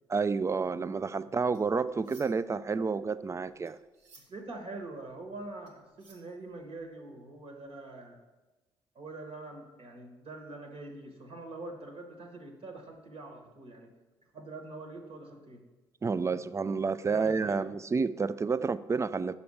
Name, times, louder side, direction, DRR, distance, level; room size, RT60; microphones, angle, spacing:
voice 1, 0.1-3.8 16.0-19.4, right 4 dB, 25° right, 15 dB, 0.3 m, -30 dB
sound 1, 1.5-2.6 2.9-6.9, right 3 dB, 75° right, 1.2 m, -60 dB
voice 2, 4.2-8.2 8.9-13.9 14.3-15.6 17.1-17.6, right 2 dB, 55° right, 3 dB, 1.2 m, -44 dB
5.9 x 4.3 x 6.2 m, 1.1 s
hypercardioid pair, 45°, 12 cm